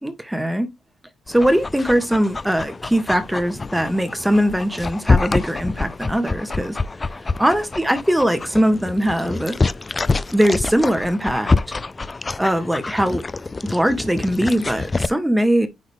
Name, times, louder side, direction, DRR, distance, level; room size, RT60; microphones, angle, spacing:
voice 1, 0.0-0.7 1.3-6.8 7.4-9.6 10.3-11.5 12.4-13.2 13.7-15.7, equal, 5° right, 1.6 m, -20 dB
Dog, 1.3-15.1, left 3 dB, 25° left, 0.4 m, -26 dB
9.9 x 4.0 x 3.6 m
cardioid pair, 90°, 0 cm